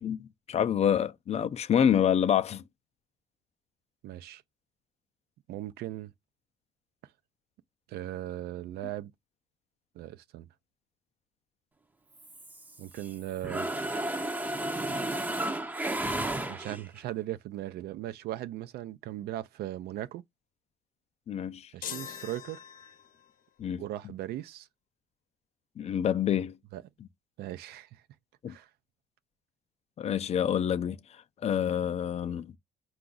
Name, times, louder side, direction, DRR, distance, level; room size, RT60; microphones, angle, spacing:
voice 1, 0.0-2.6 21.3-21.7 23.6-23.8 25.8-26.6 28.4-28.6 30.0-32.5, left 9 dB, 40° left, 0.4 m, -27 dB
voice 2, 4.0-4.4 5.5-6.1 7.9-9.1 10.0-10.5 12.8-13.7 16.5-20.2 21.7-22.6 23.8-24.7 26.7-26.8 27.4-28.0 28.5-28.7, right 14 dB, 70° right, 0.5 m, -38 dB
Mechanisms, 12.2-13.1 13.4-17.0, right 1 dB, 10° right, 0.6 m, -33 dB
sound 1, 21.8-23.3, left 8 dB, 55° left, 0.8 m, -42 dB
4.7 x 2.3 x 3.9 m
cardioid pair, 110°, 17 cm